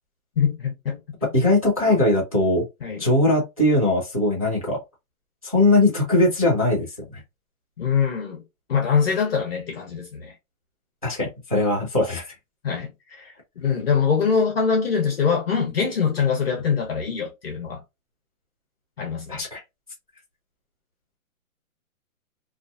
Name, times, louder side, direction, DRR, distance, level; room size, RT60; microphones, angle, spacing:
voice 1, 0.4-1.0 2.8-3.1 7.8-8.4 8.7-10.3 12.6-17.8 19.0-19.4, left 6 dB, 45° left, 0.7 m, -23 dB
voice 2, 1.3-2.6 3.0-4.8 5.4-7.2 11.0-12.3 19.3-19.6, left 2 dB, 30° right, 0.4 m, -20 dB
2.4 x 2.4 x 2.3 m
hypercardioid pair, 170°, 42 cm